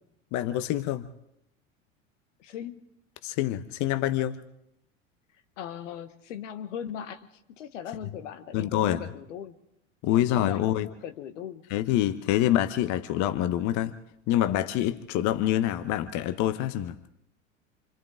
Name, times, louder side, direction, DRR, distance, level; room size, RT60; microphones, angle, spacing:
voice 1, 0.3-1.0 3.2-4.4 8.5-9.0 10.0-10.9 11.7-13.9 14.3-16.9, left 12 dB, 50° left, 0.9 m, -26 dB
voice 2, 2.4-2.8 5.6-9.5 10.1-11.6, left 9 dB, 70° left, 1.3 m, -39 dB
27.5 x 25.5 x 3.7 m
hypercardioid pair, 80°, 38 cm